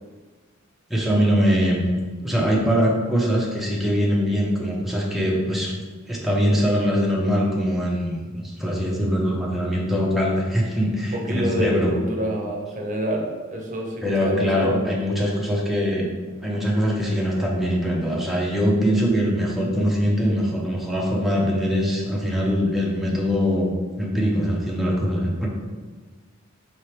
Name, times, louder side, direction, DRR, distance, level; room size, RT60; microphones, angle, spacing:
voice 1, 0.9-2.0 2.2-5.7 6.1-11.9 14.0-16.1 16.4-25.5, equal, ahead, -3 dB, 0.6 m, -22 dB
voice 2, 11.1-15.0, equal, 40° right, 0 dB, 0.7 m, -27 dB
4.5 x 3.2 x 3.3 m, 1.4 s
head